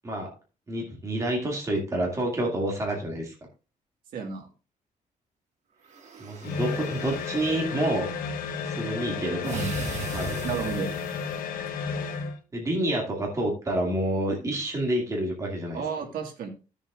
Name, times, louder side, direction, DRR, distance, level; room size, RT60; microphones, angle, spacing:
voice 1, 0.7-3.3 6.2-8.1 8.7-9.6 10.1-10.4 12.5-15.8, right 1 dB, 20° right, -1 dB, 2.2 m, -28 dB
voice 2, 4.1-4.5 9.4-9.7 10.4-10.9 15.7-16.5, right 6 dB, 85° right, 2 dB, 1.8 m, -32 dB
sound 1, 5.8-7.6 9.4-11.4, right 4 dB, 55° right, 1.7 m, -38 dB
sound 2, 6.4-12.4, left 5 dB, 80° left, 1.2 m, -32 dB
13.0 x 7.0 x 2.5 m, 0.32 s
cardioid pair, 155°, 14 cm